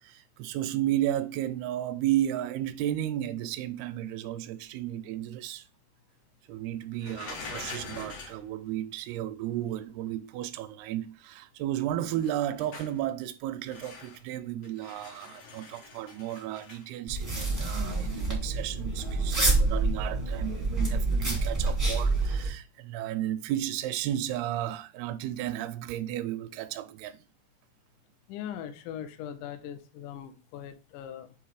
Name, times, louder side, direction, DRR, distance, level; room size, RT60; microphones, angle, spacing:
voice 1, 0.0-5.7 6.5-27.2, right 12 dB, 80° right, 2.4 m, -33 dB
sound 1, 7.0-8.4 12.2-13.0 13.7-14.3 14.6-16.9 19.2-19.4, left 4 dB, 70° left, 1.4 m, -44 dB
sound 2, 17.1-22.5, right 3 dB, 20° right, 0.5 m, -27 dB
voice 2, 28.3-31.3, left 9 dB, 90° left, 1.8 m, -40 dB
7.0 x 3.0 x 4.8 m
omnidirectional pair, 4.7 m